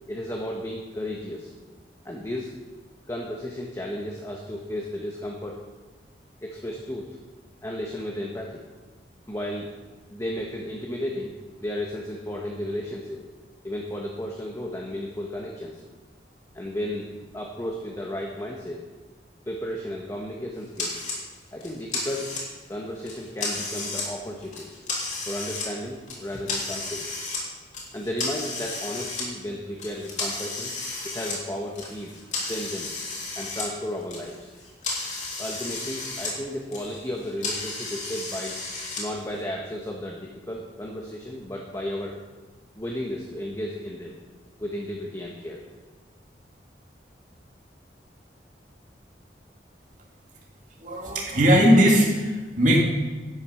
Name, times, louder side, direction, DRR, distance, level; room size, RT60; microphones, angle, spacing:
voice 1, 0.1-1.5 2.0-2.5 3.1-5.7 6.4-7.2 7.6-8.6 9.3-9.8 10.1-11.3 11.6-13.2 13.6-15.8 16.5-18.9 19.5-21.0 21.5-22.4 22.7-24.7 25.3-27.0 27.9-30.7 31.0-32.9 33.3-34.5 35.4-38.6 39.0-42.2 42.7-44.2 44.6-45.6, left 1 dB, 15° left, -1 dB, 1.2 m, -33 dB
sound 1, 20.8-21.2 21.6-22.7 23.1-24.1 24.4-25.7 26.1-27.4 27.7-29.2 29.8-33.7 34.0-36.3 36.6-39.0, left 3 dB, 40° left, 3.4 m, -33 dB
voice 2, 50.8-52.8, equal, 45° right, -1 dB, 2.6 m, -19 dB
12.0 x 9.5 x 5.8 m, 1.3 s
head